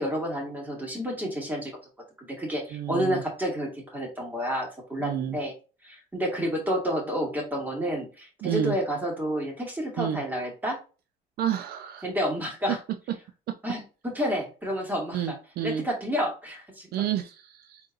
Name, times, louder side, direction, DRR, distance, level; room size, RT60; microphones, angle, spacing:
voice 1, 0.0-1.7 2.2-5.5 5.8-10.8 12.0-12.8 13.6-15.4 15.6-16.9, equal, 10° right, -1 dB, 2.2 m, -30 dB
voice 2, 2.7-3.2 5.0-5.4 8.4-8.7 10.0-10.2 11.4-12.1 13.5-13.6 15.1-15.9 16.9-17.8, right 10 dB, 70° right, 8 dB, 0.5 m, -30 dB
4.3 x 3.8 x 2.5 m, 0.33 s
cardioid pair, 110°, 17 cm